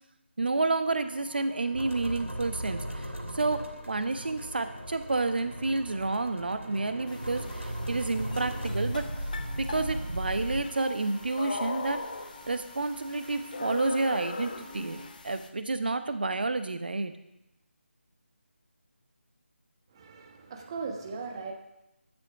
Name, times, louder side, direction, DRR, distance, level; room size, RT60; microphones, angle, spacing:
voice 1, 0.4-9.1 9.6-12.0 12.5-17.1, right 3 dB, 50° right, 10 dB, 1.0 m, -30 dB
sound 1, 0.8-15.1, left 2 dB, ahead, 3.3 m, -49 dB
sound 2, 1.7-10.6, right 1 dB, 85° right, 2.5 m, -37 dB
sound 3, 7.1-15.5, left 3 dB, 40° left, 1.0 m, -41 dB
voice 2, 19.9-21.5, right 4 dB, 20° right, 3 dB, 1.2 m, -38 dB
12.5 x 8.2 x 5.8 m, 0.89 s
figure-of-eight pair, 160°, 7 cm